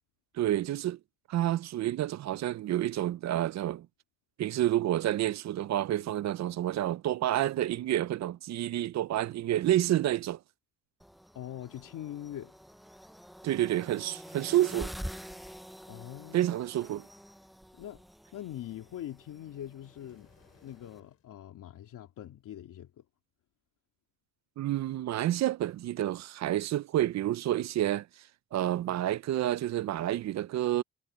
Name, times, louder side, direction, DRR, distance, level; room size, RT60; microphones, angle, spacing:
voice 1, 0.3-1.0 1.3-3.9 4.4-10.4 13.4-14.9 16.3-17.1 24.6-28.1 28.5-30.8, right 13 dB, 60° right, 0.5 m, -29 dB
sound 1, 11.0-21.0, equal, ahead, 0.3 m, -47 dB
voice 2, 11.3-12.5 15.9-16.6 17.7-18.0 18.3-20.3 20.6-23.0, left 11 dB, 90° left, 2.6 m, -43 dB
sound 2, 19.8-21.3, left 8 dB, 50° left, 5.5 m, -63 dB
cardioid pair, 155°, 31 cm